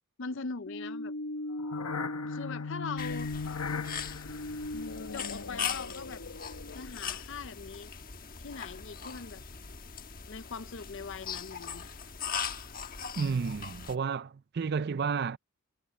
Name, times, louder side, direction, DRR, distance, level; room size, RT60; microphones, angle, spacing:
voice 1, 0.2-1.1 2.0-3.3 5.1-6.2 6.8-7.9 8.4-9.4 10.3-11.9, left 4 dB, 55° left, 0.5 m, -41 dB
sound 1, 0.7-7.1, left 3 dB, 80° left, 1.1 m, -37 dB
sound 2, 3.0-13.9, left 6 dB, 40° left, 1.3 m, -40 dB
voice 2, 13.2-15.4, right 5 dB, 45° right, 0.4 m, -31 dB
head